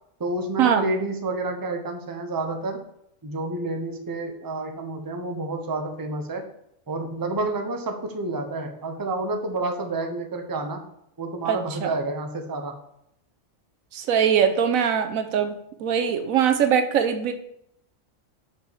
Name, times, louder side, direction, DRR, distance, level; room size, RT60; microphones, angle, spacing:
voice 1, 0.2-2.8 3.2-6.4 6.9-10.8 11.2-12.8, right 2 dB, 20° right, 4 dB, 0.7 m, -29 dB
voice 2, 11.4-11.9 13.9-17.3, right 8 dB, 85° right, 8 dB, 1.2 m, -22 dB
5.4 x 5.3 x 6.0 m, 0.74 s
omnidirectional pair, 1.4 m